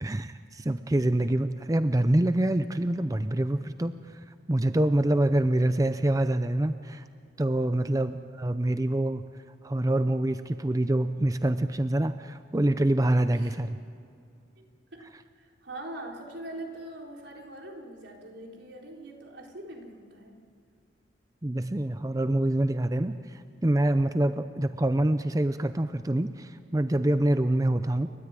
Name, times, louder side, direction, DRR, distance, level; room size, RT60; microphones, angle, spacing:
voice 1, 0.0-3.9 4.5-7.0 7.4-9.2 9.6-13.8 21.4-28.1, right 1 dB, 20° right, 10 dB, 0.5 m, -26 dB
voice 2, 13.3-13.7 14.6-14.7 14.9-15.1 15.3-20.4, right 1 dB, 85° right, 0 dB, 4.1 m, -43 dB
30.0 x 13.5 x 9.0 m, 2.4 s
head